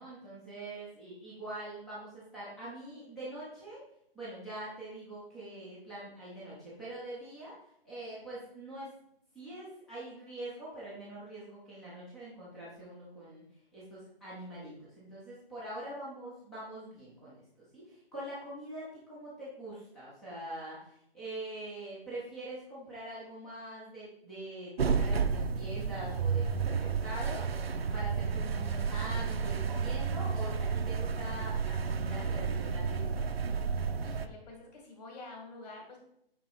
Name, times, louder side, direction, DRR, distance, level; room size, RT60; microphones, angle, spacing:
voice 1, 0.0-3.8 4.1-7.6 7.8-8.9 9.3-13.4 13.7-17.4 17.7-33.3, right 1 dB, ahead, -8 dB, 0.4 m, -44 dB
sound 1, 24.8-34.3, right 5 dB, 80° right, 0.7 m, -31 dB
voice 2, 34.0-36.0, left 2 dB, 40° left, 1 dB, 2.3 m, -48 dB
8.7 x 3.6 x 5.0 m, 0.73 s
figure-of-eight pair, 140°, 30 cm